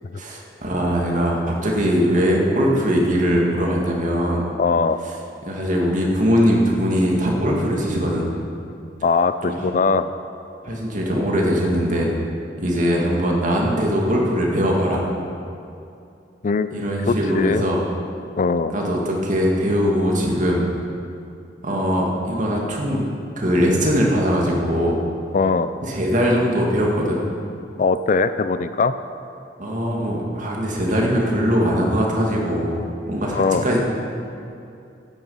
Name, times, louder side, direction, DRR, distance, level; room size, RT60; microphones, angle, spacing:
voice 1, 0.2-4.4 5.4-8.3 10.6-12.1 12.6-15.1 16.7-17.8 18.7-20.6 21.6-23.0 23.4-25.0 25.8-27.2 29.6-33.8, equal, 45° right, -1 dB, 2.1 m, -21 dB
voice 2, 4.6-5.0 9.0-10.1 16.4-16.7 17.1-17.6 18.4-18.7 25.3-25.7 27.8-28.9 33.3-33.6, left 4 dB, 45° left, 12 dB, 0.4 m, -20 dB
13.0 x 9.6 x 5.5 m, 2.6 s
head